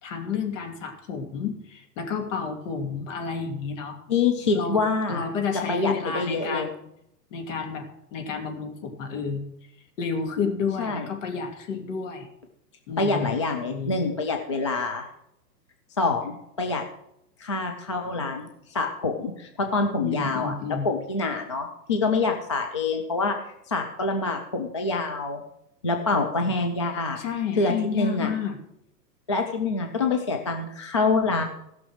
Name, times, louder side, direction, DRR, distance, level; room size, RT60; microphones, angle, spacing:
voice 1, 0.0-4.0 4.5-4.8 5.1-6.9 7.3-9.4 10.0-12.3 12.9-13.3 13.7-14.0 20.0-20.9 26.4-26.5 27.2-28.6, left 5 dB, 50° left, 4 dB, 2.7 m, -30 dB
voice 2, 4.1-5.2 5.7-6.7 10.8-11.1 13.0-15.1 16.0-16.8 17.4-20.5 20.8-25.4 25.8-27.2 27.5-28.3 29.3-31.4, left 3 dB, 20° left, 3 dB, 0.3 m, -26 dB
16.0 x 6.1 x 6.4 m, 0.79 s
hypercardioid pair, 135°, 50 cm